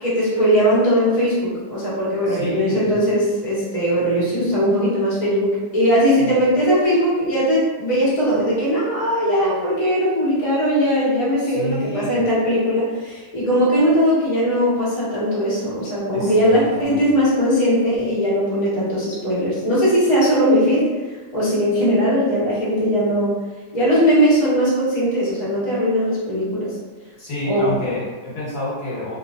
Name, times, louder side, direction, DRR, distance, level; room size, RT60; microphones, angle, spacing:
voice 1, 0.0-20.8 21.3-23.3 23.7-26.7 27.4-27.7, equal, 25° left, -10 dB, 1.0 m, -19 dB
voice 2, 2.3-3.0 6.2-6.3 11.4-12.2 16.1-17.0 27.2-29.2, left 1 dB, 65° left, -9 dB, 1.5 m, -28 dB
3.1 x 2.9 x 2.4 m, 1.3 s
omnidirectional pair, 1.9 m